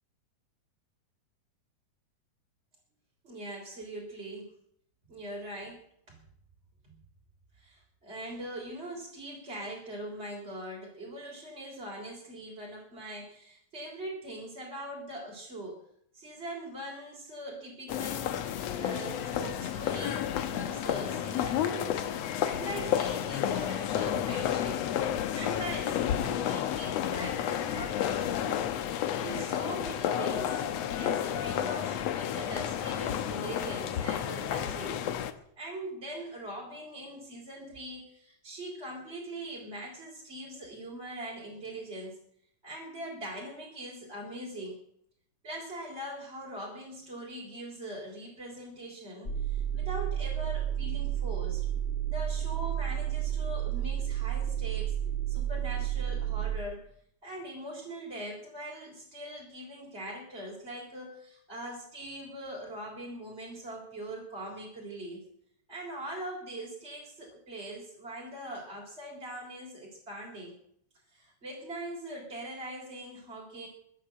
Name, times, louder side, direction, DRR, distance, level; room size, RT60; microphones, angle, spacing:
voice 1, 3.2-4.6 5.1-6.2 6.8-6.9 7.6-15.8 16.1-18.4 18.8-22.1 22.4-24.8 25.3-28.7 29.2-30.6 31.0-35.0 35.6-42.2 42.6-44.8 45.4-51.7 52.1-55.0 55.3-56.9 57.2-65.2 65.7-70.6 71.1-73.7, right 1 dB, 20° right, -2 dB, 3.5 m, -41 dB
sound 1, 17.9-35.3, left 10 dB, 70° left, 1.6 m, -31 dB
sound 2, 49.2-56.6, right 11 dB, 25° left, 1.2 m, -31 dB
22.0 x 8.2 x 7.6 m, 0.70 s
omnidirectional pair, 4.1 m